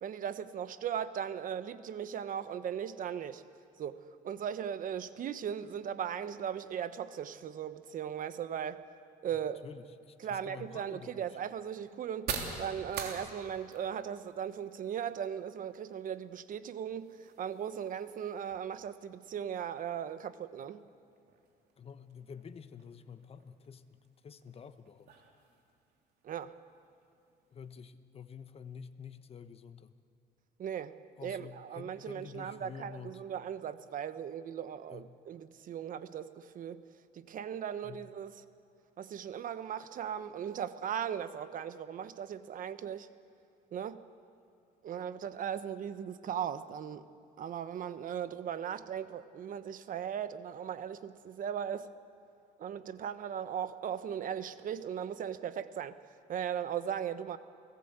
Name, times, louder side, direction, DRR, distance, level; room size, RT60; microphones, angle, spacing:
voice 1, 0.0-3.4 3.8-8.8 9.2-9.6 10.2-20.8 26.2-26.5 30.6-36.8 37.1-38.3 39.0-43.1 43.7-44.0 44.8-47.0 47.4-51.9 52.6-55.9 56.3-57.4, right 8 dB, 55° right, 12 dB, 1.1 m, -38 dB
voice 2, 9.6-11.4 21.8-25.1 27.5-30.0 31.2-33.2 34.9-35.1 37.8-38.0, left 6 dB, 35° left, 10 dB, 1.1 m, -49 dB
sound 1, 10.1-27.7, right 6 dB, 70° right, 3.5 m, -48 dB
30.0 x 18.0 x 8.2 m, 2.5 s
cardioid pair, 110°, 17 cm